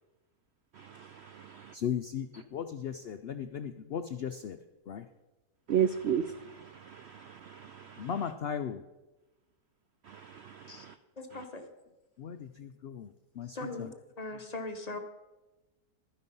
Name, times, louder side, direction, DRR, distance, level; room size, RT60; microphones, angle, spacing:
voice 1, 0.8-1.7 5.7-8.1 10.1-10.9, right 8 dB, 70° right, 11 dB, 0.6 m, -34 dB
voice 2, 1.7-4.6 4.9-5.1 8.0-8.8 12.2-13.9, left 8 dB, 80° left, 9 dB, 0.5 m, -37 dB
voice 3, 11.2-11.6 13.5-13.9 14.2-15.0, left 2 dB, 30° left, 5 dB, 0.9 m, -39 dB
12.5 x 9.8 x 5.4 m, 1.1 s
omnidirectional pair, 1.7 m